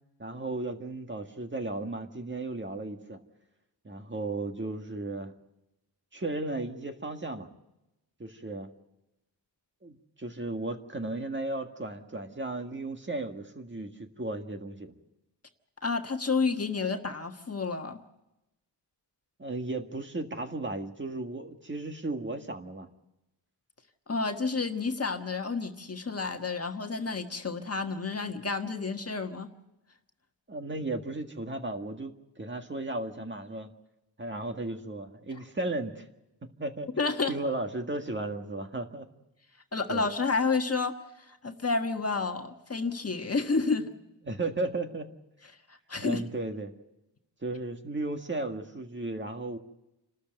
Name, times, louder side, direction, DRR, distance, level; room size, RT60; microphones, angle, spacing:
voice 1, 0.2-3.2 3.8-5.3 6.1-7.5 8.2-8.7 9.8-14.9 19.4-22.9 30.5-33.7 34.2-36.0 36.6-36.9 37.3-39.1 39.9-40.1 44.2-45.1 46.0-46.7 47.4-49.6, right 2 dB, 25° right, 5 dB, 1.8 m, -35 dB
voice 2, 15.8-18.0 24.1-29.5 37.0-37.3 39.7-43.9 45.9-46.2, left 4 dB, 35° left, 5 dB, 1.5 m, -30 dB
28.5 x 13.0 x 7.9 m, 0.93 s
wide cardioid pair, 130°, 44 cm